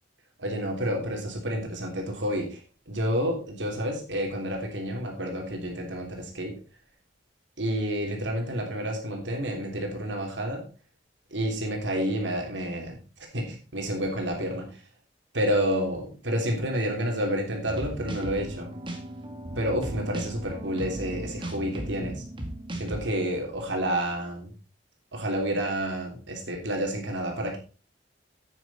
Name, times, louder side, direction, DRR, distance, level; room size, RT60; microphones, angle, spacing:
voice 1, 0.4-2.6 2.9-6.5 7.6-10.6 11.3-13.0 13.3-14.8 15.3-18.7 19.6-22.2 22.7-24.5 25.1-27.6, equal, 75° right, 1 dB, 3.2 m, -29 dB
sound 1, 17.7-23.0, right 1 dB, 30° right, 2.1 m, -36 dB
9.6 x 9.0 x 4.2 m, 0.35 s
head